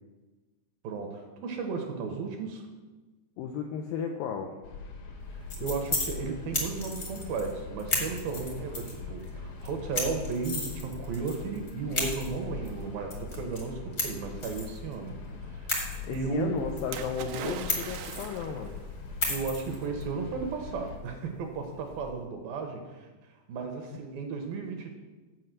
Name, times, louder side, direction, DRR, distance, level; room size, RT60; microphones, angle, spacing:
voice 1, 0.8-2.7 5.3-16.6 19.3-25.0, right 5 dB, 75° right, 4 dB, 2.3 m, -35 dB
voice 2, 3.4-4.6 16.0-18.8 23.9-24.0, left 7 dB, 85° left, 3 dB, 2.1 m, -34 dB
sound 1, 4.6-21.0, left 5 dB, 70° left, 2.7 m, -42 dB
sound 2, 5.2-22.1, left 2 dB, 45° left, 1.2 m, -37 dB
Splash splatter, 16.9-18.7 19.7-19.8, right 9 dB, 90° right, 2.8 m, -40 dB
7.8 x 5.4 x 7.5 m, 1.3 s
omnidirectional pair, 4.8 m